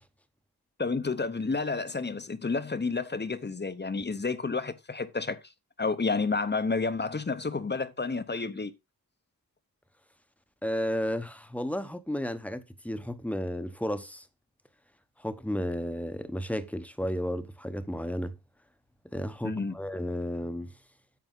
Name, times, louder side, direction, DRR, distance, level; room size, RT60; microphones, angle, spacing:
voice 1, 0.8-5.4 5.8-8.7 19.4-19.8, left 4 dB, 30° left, 0.8 m, -30 dB
voice 2, 10.6-14.2 15.2-18.3 19.1-20.7, equal, 5° left, 1.0 m, -33 dB
9.3 x 6.9 x 3.8 m
wide cardioid pair, 85°, 36 cm